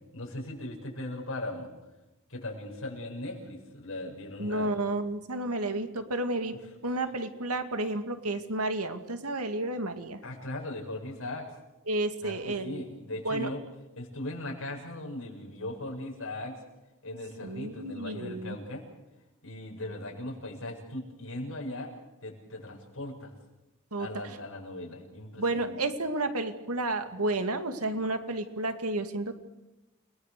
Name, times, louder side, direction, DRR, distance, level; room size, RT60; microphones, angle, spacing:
voice 1, 0.1-1.7 2.3-4.7 10.2-11.4 12.2-13.6 13.9-16.6 17.0-18.8 19.4-21.9 22.2-23.3 24.0-25.8, left 1 dB, 65° left, -1 dB, 7.4 m, -38 dB
voice 2, 4.4-6.5 6.8-10.2 11.9-12.9 13.2-13.5 17.4-18.6 23.9-24.4 25.4-29.4, right 2 dB, 85° right, 7 dB, 2.3 m, -31 dB
30.0 x 21.0 x 6.8 m, 1.0 s
head